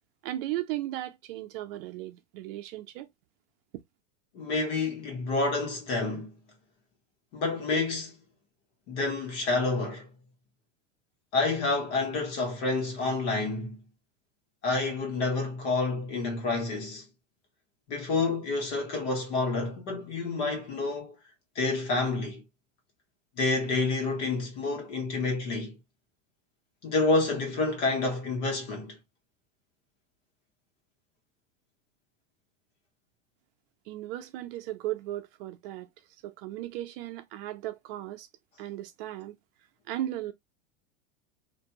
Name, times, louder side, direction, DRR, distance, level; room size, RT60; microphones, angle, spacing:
voice 1, 0.2-3.1 33.9-35.9 36.2-38.3 38.6-39.4 39.9-40.3, right 14 dB, 45° right, 0.5 m, -36 dB
voice 2, 4.3-6.4 7.3-8.1 8.9-10.1 11.3-13.8 14.6-17.0 17.9-21.1 21.5-22.4 23.4-25.8 26.8-29.0, left 3 dB, 55° left, 1.3 m, -29 dB
2.6 x 2.3 x 2.8 m
supercardioid pair, 165°, 39 cm